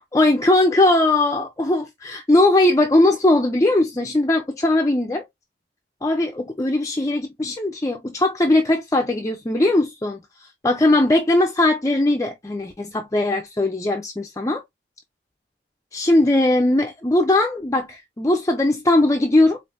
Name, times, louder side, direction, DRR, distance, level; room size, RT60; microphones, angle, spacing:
voice 1, 0.1-5.2 6.0-10.2 10.6-14.6 15.9-19.6, left 2 dB, 20° left, 0.4 m, -19 dB
4.7 x 2.6 x 2.5 m
head